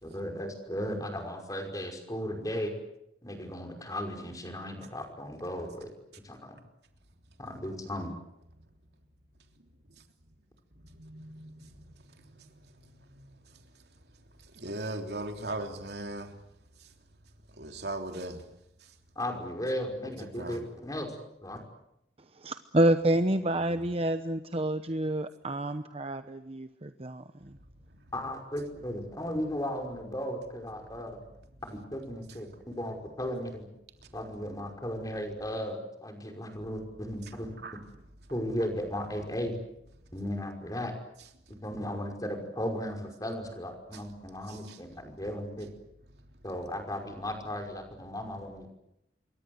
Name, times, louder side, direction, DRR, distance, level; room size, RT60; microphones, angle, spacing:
voice 1, 0.0-2.7 3.2-5.9 6.2-6.6 7.4-8.1 19.2-21.1 21.4-21.6 28.1-31.2 31.7-33.7 34.1-37.5 38.3-39.6 40.1-40.9 41.6-45.7 46.4-48.7, equal, 20° left, 5.5 m, -36 dB
voice 2, 10.8-14.0 14.3-16.4 16.8-16.9 17.5-18.4 18.8-19.0 20.0-20.6 23.6-23.9 27.4-28.1 34.0-34.2 37.2-37.8 41.5-41.6 43.9-44.0 44.5-44.8, right 2 dB, 65° right, 3.4 m, -41 dB
voice 3, 22.4-27.5, right 1 dB, 35° right, 0.9 m, -28 dB
27.5 x 23.5 x 8.1 m
head